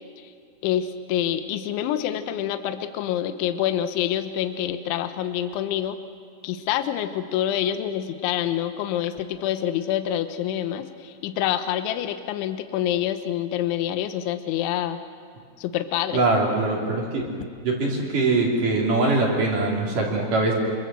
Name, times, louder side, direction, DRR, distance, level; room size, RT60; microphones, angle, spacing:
voice 1, 0.6-6.0 6.4-15.0 15.6-16.2, left 11 dB, 75° left, 9 dB, 3.4 m, -26 dB
voice 2, 16.1-17.2 17.6-20.5, right 3 dB, 45° right, -1 dB, 4.4 m, -22 dB
27.0 x 26.5 x 7.7 m, 2.1 s
omnidirectional pair, 5.7 m